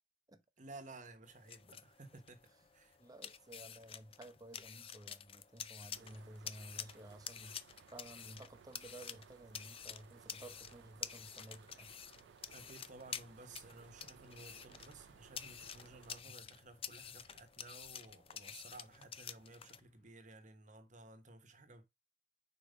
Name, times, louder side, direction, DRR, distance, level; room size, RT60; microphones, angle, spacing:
voice 1, 0.6-2.5 2.7-3.0 12.5-21.8, right 2 dB, 45° right, 1.1 m, -55 dB
sound 1, 0.9-20.1, left 2 dB, 60° left, 1.4 m, -75 dB
sound 2, 1.2-19.8, left 8 dB, 35° left, 0.5 m, -50 dB
voice 2, 3.0-11.9 16.3-16.4, right 1 dB, 20° right, 0.8 m, -54 dB
sound 3, 5.9-16.2, right 7 dB, 90° right, 0.3 m, -62 dB
5.1 x 4.4 x 5.4 m
head